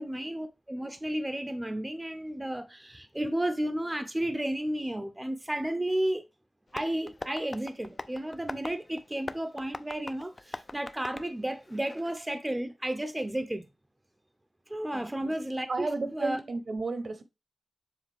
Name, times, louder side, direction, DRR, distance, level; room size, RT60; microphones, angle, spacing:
voice 1, 0.0-6.2 6.7-13.6 14.7-16.4, right 1 dB, 15° right, 0.7 m, -33 dB
Tap, 6.7-12.2, left 2 dB, 35° left, 0.5 m, -43 dB
voice 2, 14.9-15.3 15.7-17.2, right 3 dB, 60° right, 1.0 m, -33 dB
7.3 x 3.7 x 3.5 m
wide cardioid pair, 110°, 0 cm